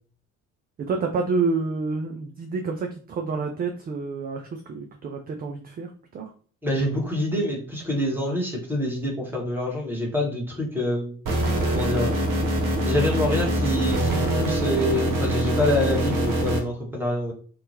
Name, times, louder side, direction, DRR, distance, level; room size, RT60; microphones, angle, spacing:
voice 1, 0.9-6.3, right 4 dB, 25° right, 3 dB, 0.4 m, -28 dB
voice 2, 6.6-11.2 11.7-12.1 12.8-17.3, left 1 dB, 5° right, -2 dB, 1.2 m, -26 dB
sound 1, 11.3-16.6, right 1 dB, 45° right, 0.9 m, -24 dB
2.8 x 2.2 x 2.8 m, 0.43 s
figure-of-eight pair, 50°, 43 cm